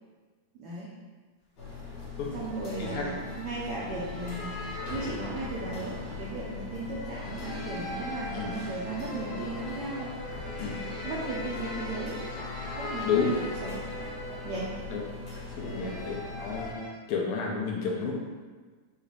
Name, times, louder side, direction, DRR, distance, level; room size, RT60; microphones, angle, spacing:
voice 1, 0.6-0.9 2.3-10.1 11.0-12.2 12.8-13.9 14.4-14.7 15.7-16.0, right 2 dB, 80° right, -6 dB, 1.3 m, -36 dB
sound 1, 1.6-16.7, left 4 dB, 65° left, 2.4 m, -40 dB
sound 2, 2.3-16.9, left 1 dB, 45° left, 1.4 m, -41 dB
voice 2, 15.6-16.8 17.1-18.1, left 6 dB, 85° left, -1 dB, 2.1 m, -30 dB
6.6 x 2.4 x 3.3 m, 1.4 s
omnidirectional pair, 3.4 m